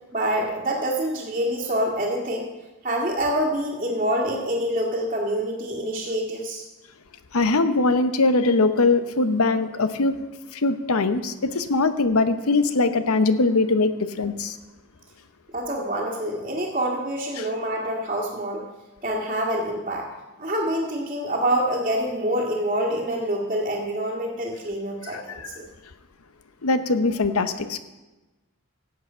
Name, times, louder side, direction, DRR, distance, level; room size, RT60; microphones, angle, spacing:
voice 1, 0.1-2.5 2.8-6.6 15.5-18.6 19.0-20.1 20.4-25.7, right 1 dB, 30° right, -7 dB, 1.9 m, -26 dB
voice 2, 7.3-10.2 10.5-14.6 17.4-17.5 25.1-25.5 26.6-27.8, left 3 dB, 75° left, 11 dB, 0.9 m, -22 dB
16.5 x 7.7 x 5.6 m, 1.1 s
head